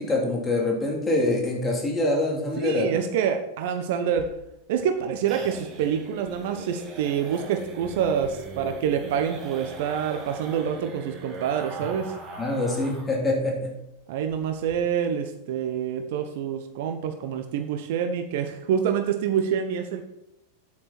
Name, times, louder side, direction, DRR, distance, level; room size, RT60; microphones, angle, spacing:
voice 1, 0.0-2.9 12.4-13.7, left 2 dB, 15° left, -1 dB, 3.2 m, -25 dB
voice 2, 2.6-4.3 4.7-12.1 14.1-20.0, right 8 dB, 50° right, 6 dB, 1.0 m, -27 dB
sound 1, 4.1-13.2 13.5-13.6 13.9-14.0 14.3-14.7, right 3 dB, 25° right, 2.7 m, -40 dB
9.9 x 8.5 x 4.3 m, 0.88 s
figure-of-eight pair, 90°, 0 cm